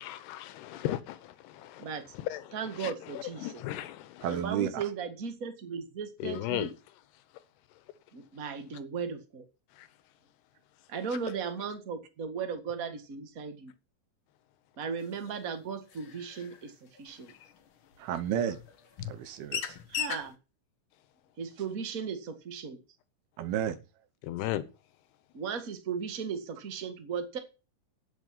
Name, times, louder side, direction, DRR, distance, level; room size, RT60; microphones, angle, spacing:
voice 1, 0.0-4.4 6.2-6.7 7.3-7.4 7.7-7.8 9.7-9.9 17.3-17.5 24.2-24.6, left 14 dB, 90° left, 3.1 m, -37 dB
voice 2, 1.8-2.1 2.5-3.5 4.3-6.7 8.1-9.4 10.9-13.7 14.8-17.3 19.9-20.3 21.4-22.8 25.3-27.4, right 6 dB, 45° right, 1.1 m, -36 dB
voice 3, 4.2-4.8 18.0-18.6 19.1-19.8 23.4-23.8, right 9 dB, 75° right, 2.8 m, -32 dB
sound 1, 15.3-15.4 15.9-16.6 17.0-17.1 17.9-18.0 18.6-18.7 19.0-19.2 19.5-20.3, left 7 dB, 70° left, 1.2 m, -36 dB
8.9 x 8.1 x 9.3 m
omnidirectional pair, 4.6 m